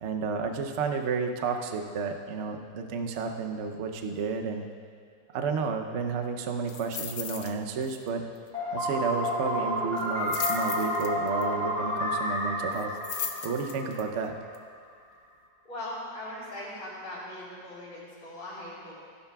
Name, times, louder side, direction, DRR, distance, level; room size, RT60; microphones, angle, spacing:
voice 1, 0.0-4.7 5.3-8.2 8.7-13.0 13.4-14.3, right 5 dB, 65° right, 4 dB, 0.7 m, -31 dB
sound 1, 6.7-7.5 7.8-8.1 8.4-8.5 10.0-11.4 12.7-14.0 14.5-14.6, left 7 dB, 85° left, 0.5 m, -36 dB
sound 2, 8.5-14.4, equal, 15° right, 2.3 m, -30 dB
voice 2, 15.7-18.9, left 1 dB, 70° left, -8 dB, 4.1 m, -40 dB
15.5 x 11.5 x 2.3 m, 2.1 s
omnidirectional pair, 2.0 m